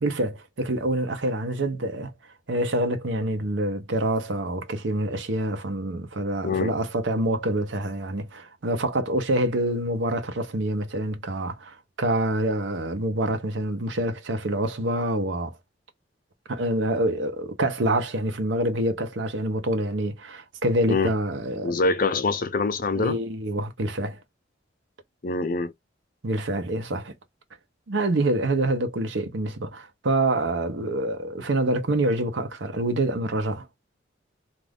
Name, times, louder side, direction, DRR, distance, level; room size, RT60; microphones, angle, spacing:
voice 1, 0.0-2.1 2.5-15.6 16.5-21.8 22.9-24.2 26.2-27.1 27.9-33.7, right 1 dB, 80° right, 0.8 m, -26 dB
voice 2, 6.4-6.8 20.9-21.1 21.6-23.2 25.2-25.7, left 3 dB, 45° left, 0.6 m, -24 dB
2.5 x 2.5 x 3.4 m
head